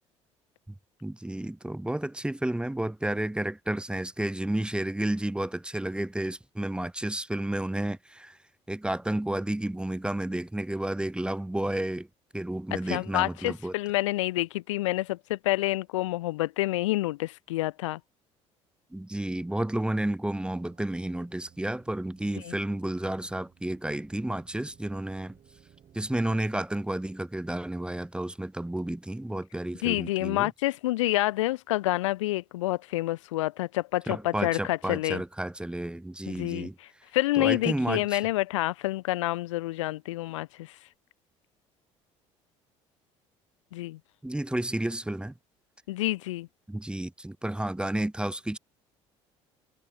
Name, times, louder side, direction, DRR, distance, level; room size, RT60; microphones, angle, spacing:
voice 1, 1.0-8.4 8.7-12.1 12.3-13.7 18.9-25.4 25.9-30.5 34.1-36.8 37.4-38.2 44.2-45.3 46.7-48.6, right 1 dB, 5° right, 0.7 m, -31 dB
voice 2, 12.9-18.0 22.4-22.5 29.8-35.2 36.3-36.7 37.1-40.7 43.7-44.0 45.9-46.5, left 17 dB, 85° left, 0.4 m, -28 dB
sound 1, 20.4-26.4, right 9 dB, 50° right, 7.8 m, -59 dB
hypercardioid pair, 65°, 16 cm